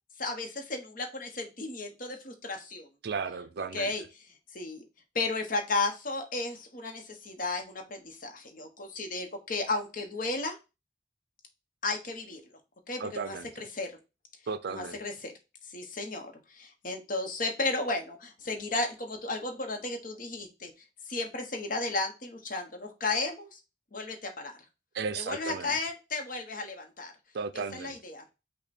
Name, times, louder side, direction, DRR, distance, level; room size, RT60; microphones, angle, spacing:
voice 1, 0.2-2.9 3.7-4.0 4.5-4.9 5.1-10.6 11.8-12.4 12.9-14.0 14.7-15.3 15.7-20.7 21.1-23.6 23.9-24.6 25.2-27.1 27.7-28.2, left 3 dB, 45° left, 1.0 m, -34 dB
voice 2, 3.0-3.9 13.0-13.6 14.5-15.0 24.9-25.8 27.3-28.0, right 5 dB, 55° right, 0.4 m, -35 dB
5.6 x 2.2 x 4.2 m
head